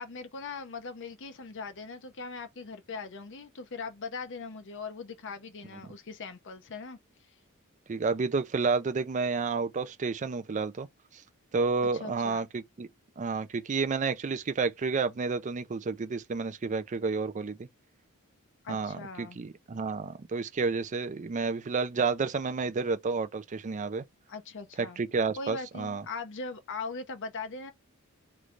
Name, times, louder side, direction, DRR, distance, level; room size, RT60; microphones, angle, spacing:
voice 1, 0.0-7.0 11.9-12.5 18.6-19.4 24.3-25.0 25.4-27.7, left 4 dB, 60° left, 0.8 m, -40 dB
voice 2, 7.9-10.9 11.1-11.2 11.5-12.9 13.2-17.7 18.7-24.0 24.8-26.0, right 4 dB, 35° right, 0.4 m, -30 dB
3.2 x 3.2 x 3.8 m
head